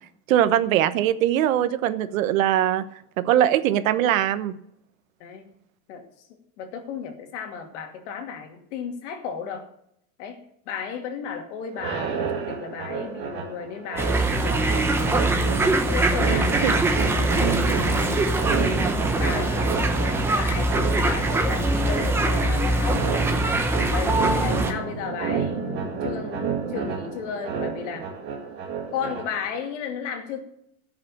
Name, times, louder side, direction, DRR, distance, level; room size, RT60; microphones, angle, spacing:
voice 1, 0.3-2.9 3.2-4.6 16.6-16.7, right 11 dB, 70° right, 13 dB, 1.1 m, -21 dB
voice 2, 5.2-5.5 5.9-9.7 10.2-10.4 10.7-15.2 15.8-17.7 18.1-18.7 19.2-23.6 23.9-28.1 28.9-30.4, left 7 dB, 55° left, 5 dB, 2.5 m, -34 dB
sound 1, 11.7-29.6, right 6 dB, 25° right, 2.0 m, -31 dB
sound 2, 14.0-24.7, right 2 dB, 5° right, 0.7 m, -22 dB
15.0 x 6.4 x 7.0 m, 0.73 s
supercardioid pair, 180°, 42 cm